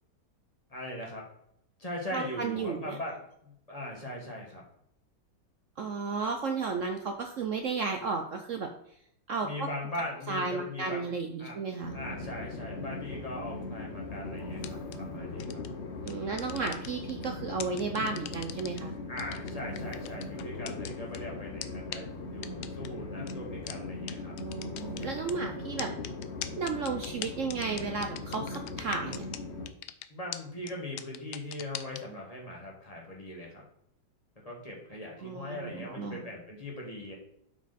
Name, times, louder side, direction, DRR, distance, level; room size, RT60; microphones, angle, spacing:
voice 1, 0.7-1.2 1.8-4.6 9.4-11.1 11.4-11.6 11.9-15.6 19.1-24.3 30.1-33.6 34.5-37.1, left 1 dB, 20° left, -2 dB, 2.0 m, -40 dB
voice 2, 2.1-3.0 5.8-8.7 9.3-9.7 10.3-11.9 16.0-18.9 24.4-25.9 26.6-29.2 35.2-36.2, right 4 dB, 65° right, 4 dB, 0.7 m, -33 dB
Train, 11.8-29.7, left 2 dB, 50° left, 0.9 m, -39 dB
sound 1, 14.6-15.0 15.4-15.7 16.1-17.3 17.6-18.8 19.2-21.2 21.6-21.7 21.9-22.0 22.4-22.9 23.3-23.4 23.7-23.8 24.1-24.2 24.4-25.3 25.8-29.4 29.7-30.0 30.3-30.4 30.7-30.8 31.0-32.0, left 12 dB, 70° left, 1.1 m, -39 dB
7.9 x 4.7 x 4.2 m, 0.72 s
omnidirectional pair, 2.0 m